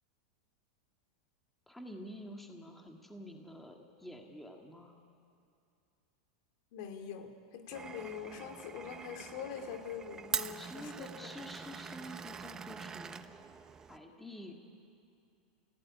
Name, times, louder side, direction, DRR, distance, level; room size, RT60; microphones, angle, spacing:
voice 1, 1.7-5.0 10.6-13.2 13.9-14.5, left 1 dB, 5° left, 2 dB, 1.9 m, -48 dB
voice 2, 6.7-11.3, left 7 dB, 60° left, 6 dB, 2.8 m, -44 dB
Glass, 7.7-14.0, right 6 dB, 20° right, 0.8 m, -43 dB
27.5 x 16.0 x 9.9 m, 2.5 s
supercardioid pair, 140°, 3 cm